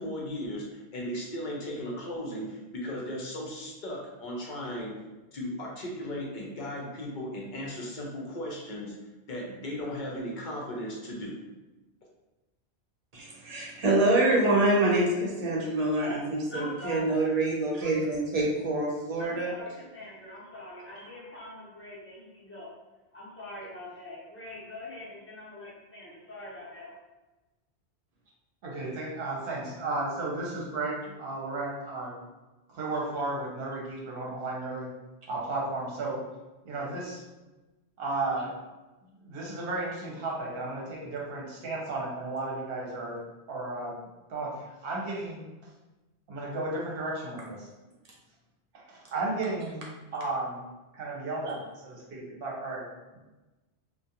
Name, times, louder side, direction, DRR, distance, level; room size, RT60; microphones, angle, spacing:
voice 1, 0.0-5.0 5.3-8.9 9.3-11.3, left 1 dB, 55° left, -2 dB, 0.7 m, -36 dB
voice 2, 13.1-19.5, right 2 dB, 50° right, -3 dB, 0.5 m, -26 dB
voice 3, 16.5-17.1 19.2-22.7 23.1-27.0, left 2 dB, 15° left, -7 dB, 0.6 m, -43 dB
voice 4, 28.6-32.1 32.7-34.9 35.3-36.2 36.6-37.2 38.0-38.5 39.2-43.2 43.5-43.9 44.3-45.5 46.3-47.7 48.7-49.8 50.1-50.6 50.9-52.9 53.1-53.2, right 2 dB, 65° right, -3 dB, 0.8 m, -34 dB
2.3 x 2.2 x 2.8 m, 1.1 s
omnidirectional pair, 1.1 m